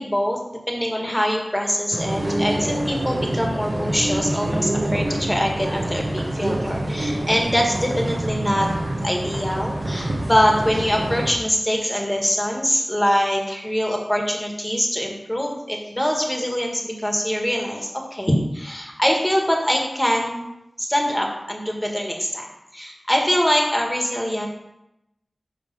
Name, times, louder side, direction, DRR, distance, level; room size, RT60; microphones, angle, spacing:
voice 1, 0.0-8.7 9.0-20.4 20.8-24.5, equal, 10° left, 0 dB, 1.6 m, -23 dB
sound 1, 1.9-11.3, right 1 dB, 55° right, 1.3 m, -26 dB
9.9 x 3.5 x 6.0 m, 0.87 s
wide cardioid pair, 65°, 0 cm